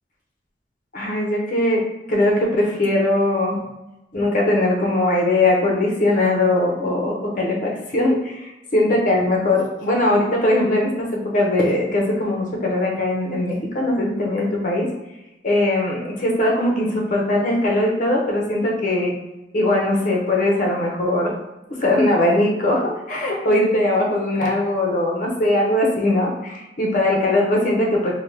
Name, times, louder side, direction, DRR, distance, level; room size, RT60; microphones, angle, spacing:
voice 1, 0.9-3.6 4.1-14.9 15.4-19.1 19.5-21.3 21.7-28.1, left 1 dB, 45° left, -1 dB, 0.7 m, -20 dB
2.9 x 2.1 x 3.1 m, 0.97 s
head